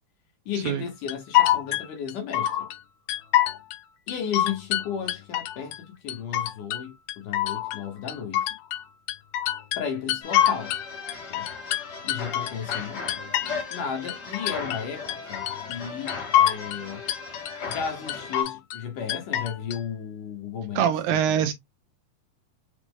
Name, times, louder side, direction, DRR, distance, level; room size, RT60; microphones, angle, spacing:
voice 1, 0.5-2.5 4.1-8.5 9.7-10.8 11.3-11.5 12.0-13.0 13.7-15.4 15.7-17.0 17.7-21.5, left 7 dB, 70° left, 2.3 m, -34 dB
sound 1, 1.1-2.8 3.1-3.8 4.1-5.8 6.1-6.8 7.1-10.8 11.1-13.8 14.1-14.8 15.1-15.8 16.1-16.8 17.1-17.8 18.1-18.8 19.1-19.8, left 12 dB, 90° left, 1.8 m, -25 dB
sound 2, 10.2-18.4, left 4 dB, 35° left, 1.7 m, -37 dB
voice 2, 20.8-21.5, right 9 dB, 80° right, 2.3 m, -23 dB
6.0 x 2.5 x 3.5 m
omnidirectional pair, 4.5 m